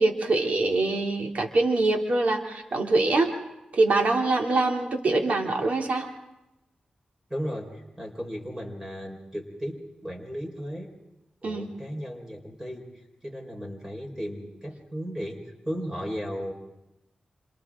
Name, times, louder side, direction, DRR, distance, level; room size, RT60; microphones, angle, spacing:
voice 1, 0.0-3.3 3.7-6.1 11.4-11.7, right 2 dB, 70° right, 2 dB, 3.0 m, -24 dB
voice 2, 7.3-10.9 11.4-12.9 13.2-15.4 15.6-16.5, equal, 20° right, 2 dB, 5.0 m, -35 dB
28.0 x 27.0 x 3.8 m, 0.94 s
cardioid pair, 55°, 3 cm